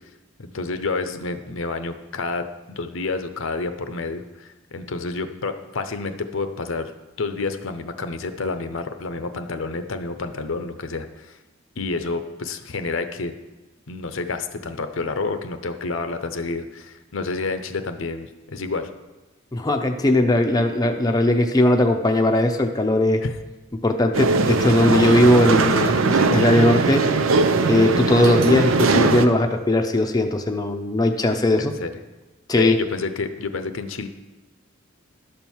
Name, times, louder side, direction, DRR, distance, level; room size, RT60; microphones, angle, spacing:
voice 1, 0.4-6.9 7.2-11.4 11.8-13.3 13.9-18.9 23.2-23.3 31.6-31.9 32.6-34.1, left 3 dB, 65° left, 9 dB, 0.7 m, -29 dB
voice 2, 19.5-23.2 23.8-27.0 27.7-31.7 32.5-32.8, left 1 dB, 20° left, 3 dB, 0.6 m, -19 dB
sound 1, 24.1-29.3, right 4 dB, 75° right, 0.6 m, -20 dB
11.5 x 4.5 x 7.2 m, 1.1 s
head